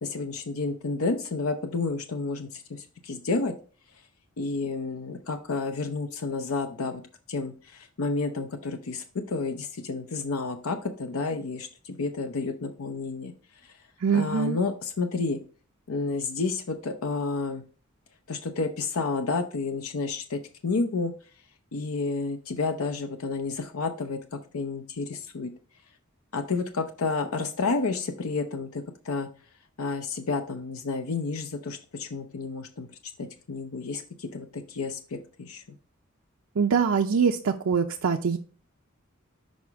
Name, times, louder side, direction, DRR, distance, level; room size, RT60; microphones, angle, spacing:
voice 1, 0.0-3.5 4.4-7.0 7.3-13.3 14.1-15.4 15.9-17.6 18.3-21.1 21.7-25.5 26.3-29.3 29.8-32.9 33.2-35.6, left 3 dB, 85° left, 7 dB, 0.6 m, -30 dB
voice 2, 14.0-14.6 36.6-38.4, right 6 dB, 70° right, 4 dB, 0.5 m, -23 dB
6.3 x 4.9 x 3.5 m, 0.39 s
head